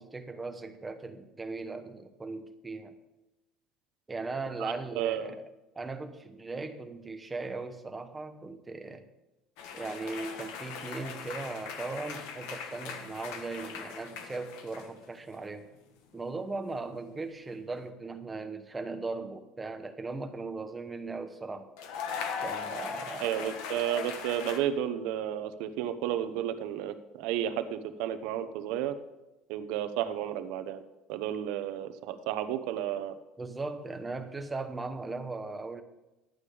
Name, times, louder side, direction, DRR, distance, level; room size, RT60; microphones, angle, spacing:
voice 1, 0.0-3.0 4.1-5.5 5.8-9.0 9.7-15.7 16.1-21.7 22.4-23.6 33.4-35.8, right 3 dB, 10° right, 7 dB, 0.9 m, -38 dB
voice 2, 4.6-5.3 23.2-29.0 29.5-30.8 31.1-33.1, right 11 dB, 75° right, 10 dB, 0.9 m, -32 dB
sound 1, 9.6-15.1 15.3-15.8 17.7-17.9 21.8-24.6, left 6 dB, 75° left, 1.3 m, -39 dB
12.0 x 8.7 x 5.0 m, 0.99 s
cardioid pair, 160°, 0 cm